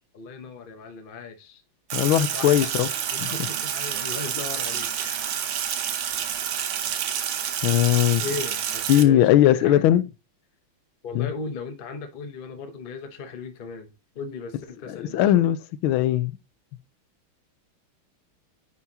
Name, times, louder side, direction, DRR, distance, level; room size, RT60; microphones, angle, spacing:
voice 1, 0.1-1.6 2.3-2.8 3.1-5.4 8.2-9.9 11.0-15.5, left 4 dB, 45° left, 0.6 m, -37 dB
voice 2, 1.9-2.9 3.2-3.3 7.6-8.2 8.9-10.0 11.1-11.3 14.9-15.6 15.8-16.4, left 12 dB, 80° left, 1.4 m, -19 dB
Sink (filling or washing), 1.9-9.0, right 9 dB, 75° right, 1.6 m, -28 dB
9.7 x 4.6 x 2.8 m
omnidirectional pair, 2.3 m